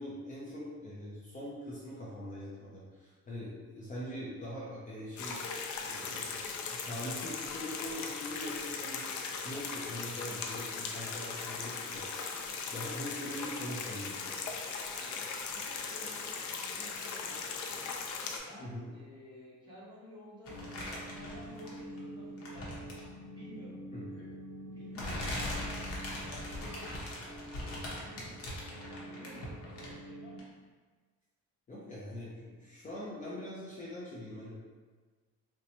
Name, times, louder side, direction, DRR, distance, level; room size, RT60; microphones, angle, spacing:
voice 1, 0.0-5.4 5.8-6.4 6.7-9.1 9.4-12.3 12.7-14.4 18.6-18.9 23.9-24.0 31.7-34.6, left 1 dB, 25° left, -7 dB, 0.6 m, -42 dB
sound 1, 5.2-18.4, left 5 dB, 75° left, 0.5 m, -39 dB
voice 2, 14.7-15.2 15.5-18.0 18.4-23.0 23.3-23.8 24.7-25.7 26.3-27.0 27.9-28.4 28.8-30.5, left 1 dB, 15° right, -9 dB, 1.1 m, -53 dB
sound 2, 20.5-22.0 22.4-23.1 24.1-24.3 24.9-30.1 30.4-30.5, left 1 dB, 50° left, 0.9 m, -40 dB
sound 3, 20.5-30.4, right 1 dB, 75° right, 0.6 m, -47 dB
3.9 x 2.2 x 2.9 m, 1.4 s
cardioid pair, 140°, 30 cm